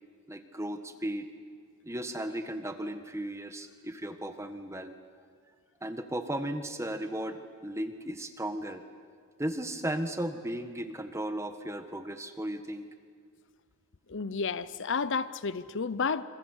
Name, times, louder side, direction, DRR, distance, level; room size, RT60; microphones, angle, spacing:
voice 1, 0.3-1.3 1.8-4.9 5.8-8.8 9.4-12.9, right 1 dB, 15° right, 8 dB, 1.5 m, -35 dB
voice 2, 14.1-16.2, left 5 dB, 55° left, 15 dB, 0.7 m, -31 dB
27.5 x 26.0 x 8.2 m, 2.1 s
head